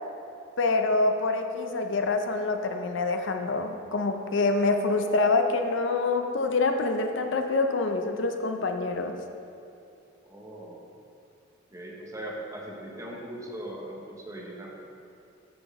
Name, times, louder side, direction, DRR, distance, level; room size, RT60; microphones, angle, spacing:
voice 1, 0.6-9.2, left 3 dB, 65° left, 5 dB, 0.6 m, -26 dB
voice 2, 10.2-10.9 11.7-14.8, right 1 dB, 15° right, -2 dB, 0.9 m, -40 dB
8.5 x 6.0 x 3.6 m, 2.6 s
head